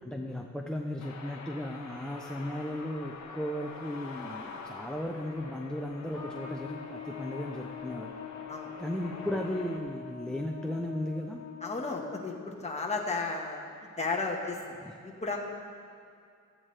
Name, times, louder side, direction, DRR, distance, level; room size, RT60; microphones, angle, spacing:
voice 1, 0.0-8.1 8.8-11.4 14.8-15.0, left 1 dB, ahead, 2 dB, 0.5 m, -36 dB
sound 1, 1.0-9.8, left 4 dB, 55° left, 1.3 m, -46 dB
Trumpet, 6.1-12.6, left 6 dB, 40° left, 2.3 m, -43 dB
voice 2, 11.6-13.6 14.0-14.6 15.0-15.4, left 3 dB, 20° left, -1 dB, 1.4 m, -33 dB
16.5 x 13.5 x 3.3 m, 2.4 s
wide cardioid pair, 165°, 32 cm